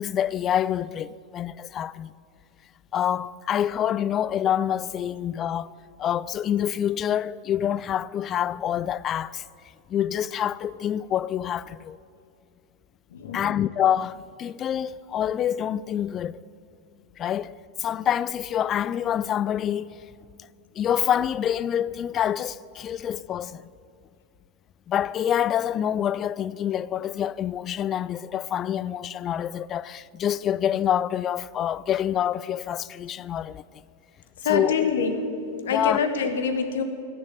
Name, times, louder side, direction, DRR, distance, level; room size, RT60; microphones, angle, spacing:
voice 1, 0.0-2.1 2.9-5.7 6.0-9.4 9.9-12.0 13.3-16.4 17.2-20.0 20.8-23.6 24.9-33.6 34.5-34.8 35.7-36.0, left 10 dB, 30° left, 0.3 m, -26 dB
voice 2, 13.1-13.6 34.4-35.3 35.6-36.8, left 6 dB, 60° left, 1.3 m, -25 dB
16.5 x 7.2 x 9.2 m
figure-of-eight pair, 90°, 0 cm